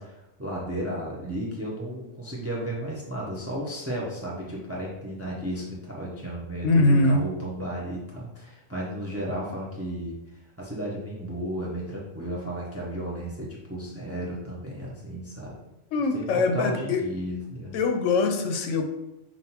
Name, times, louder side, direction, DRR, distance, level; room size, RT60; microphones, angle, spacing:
voice 1, 0.0-10.1 10.6-15.5 16.1-17.7, right 1 dB, 15° right, -4 dB, 0.5 m, -34 dB
voice 2, 6.6-7.3 15.9-17.0 17.7-18.8, left 3 dB, 80° left, 5 dB, 0.9 m, -22 dB
5.5 x 2.5 x 2.8 m, 0.92 s
omnidirectional pair, 1.3 m